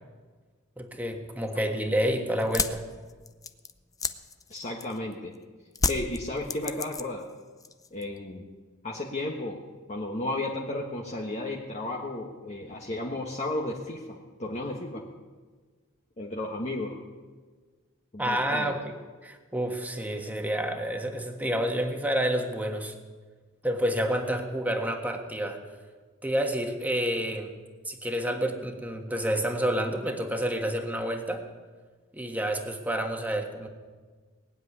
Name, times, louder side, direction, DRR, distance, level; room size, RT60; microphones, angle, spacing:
voice 1, 0.8-2.8 18.2-18.9 19.2-22.9 23.6-25.6 26.2-27.5 27.8-31.4 32.1-33.7, equal, 10° right, 4 dB, 1.5 m, -29 dB
sound 1, 2.4-5.1 5.7-7.3 7.6-8.2, left 4 dB, 15° left, 0.6 m, -31 dB
voice 2, 4.5-5.3 5.9-7.2 7.9-8.4 8.8-9.6 9.9-15.0 16.2-17.0 18.1-18.8, left 2 dB, 35° left, -1 dB, 1.3 m, -33 dB
19.5 x 7.6 x 9.7 m, 1.5 s
head